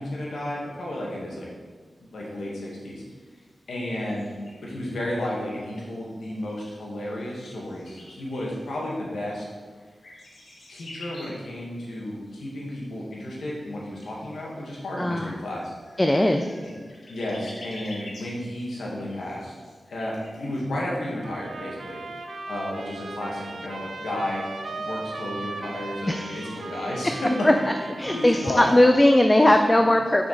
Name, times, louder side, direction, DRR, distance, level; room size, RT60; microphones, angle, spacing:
voice 1, 0.0-1.5 2.1-3.0 3.7-4.3 4.6-9.5 10.7-15.7 16.6-16.7 17.1-19.5 19.9-22.0 22.5-27.5 28.1-28.8, left 1 dB, 90° left, -3 dB, 2.2 m, -32 dB
sound 1, 2.2-20.6, left 1 dB, 75° left, 2.0 m, -50 dB
voice 2, 15.0-15.4 16.0-16.5 26.1-26.6 27.4-27.5 28.0-30.3, left 1 dB, 20° left, 5 dB, 0.5 m, -19 dB
sound 2, 21.2-29.0, right 3 dB, 65° right, 0.7 m, -37 dB
7.1 x 5.1 x 6.9 m, 1.5 s
wide cardioid pair, 85°, 0 cm